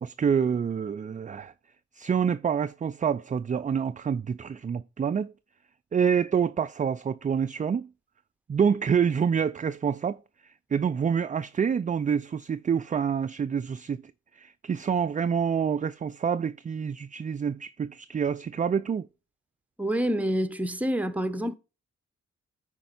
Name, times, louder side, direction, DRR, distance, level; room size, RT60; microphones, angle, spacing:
voice 1, 0.0-1.5 2.0-5.3 5.9-7.9 8.5-10.2 10.7-14.0 14.4-19.1, right 7 dB, 25° right, 0.4 m, -27 dB
voice 2, 19.8-21.6, equal, 5° right, 0.8 m, -27 dB
10.0 x 4.4 x 4.0 m
supercardioid pair, 45°, 30 cm